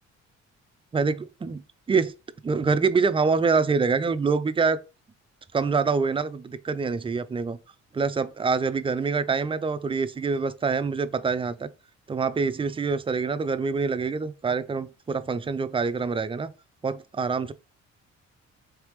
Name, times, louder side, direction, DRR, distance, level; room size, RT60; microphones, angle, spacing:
voice 1, 0.9-1.6 1.9-2.1 2.4-4.8 5.5-7.6 7.9-11.7 12.1-16.5 16.8-17.5, right 5 dB, 20° right, 0.3 m, -25 dB
4.0 x 3.4 x 3.1 m
cardioid pair, 90°, 30 cm